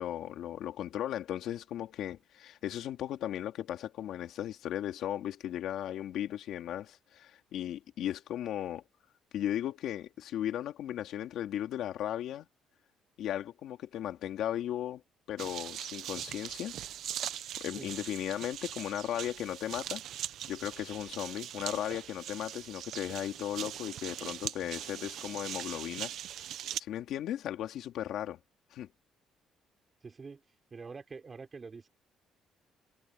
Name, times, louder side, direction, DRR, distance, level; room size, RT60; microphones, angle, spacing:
voice 1, 0.0-8.8 9.3-12.5 13.2-15.0 15.3-16.8 17.6-20.0 20.5-26.1 26.8-28.4 28.7-28.9, left 11 dB, 65° left, 2.8 m, -36 dB
sound 1, 15.4-26.8, right 11 dB, 60° right, 1.1 m, -41 dB
voice 2, 30.0-30.4 30.7-31.9, right 4 dB, 25° right, 4.8 m, -45 dB
cardioid pair, 165°, 0 cm